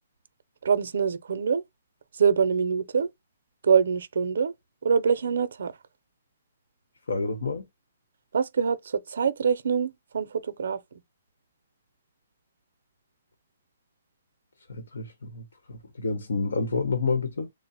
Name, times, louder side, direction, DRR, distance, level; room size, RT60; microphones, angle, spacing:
voice 1, 0.6-1.6 2.2-3.1 3.6-4.5 4.8-5.7 8.3-10.8, right 6 dB, 60° right, 0.6 m, -24 dB
voice 2, 7.1-7.6 14.7-17.5, left 4 dB, 85° left, 0.9 m, -29 dB
3.7 x 2.0 x 4.1 m
hypercardioid pair, 180°, 0 cm